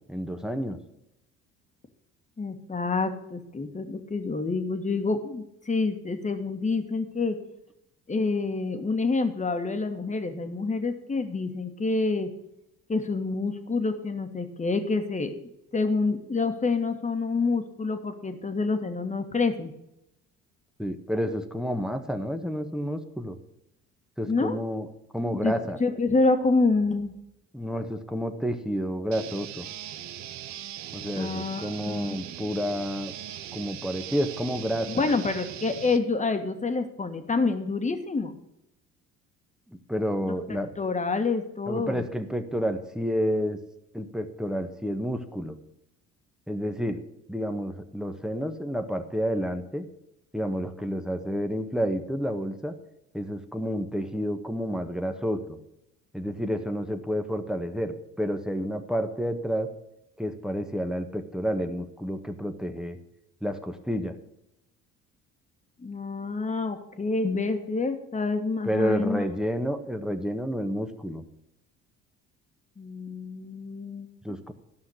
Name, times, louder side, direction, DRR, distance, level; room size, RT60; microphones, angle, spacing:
voice 1, 0.1-0.8 20.8-23.4 24.2-24.9 25.1-25.8 27.5-29.7 30.9-33.1 33.5-35.2 39.9-40.7 41.7-43.6 43.9-45.6 46.5-47.0 47.3-49.8 50.3-52.7 53.1-55.6 56.1-59.7 60.2-63.0 63.4-64.1 68.6-71.2 74.2-74.5, equal, ahead, 7 dB, 1.4 m, -30 dB
voice 2, 2.4-7.4 8.1-12.3 12.9-15.3 15.7-19.7 24.3-24.6 25.4-25.5 25.8-27.1 31.1-32.2 34.9-38.4 40.3-42.0 65.8-69.2 72.8-74.1, left 3 dB, 25° left, 7 dB, 1.8 m, -27 dB
sound 1, 29.1-36.0, right 11 dB, 60° right, 0.9 m, -40 dB
13.0 x 5.7 x 8.1 m, 0.83 s
supercardioid pair, 75°, 32 cm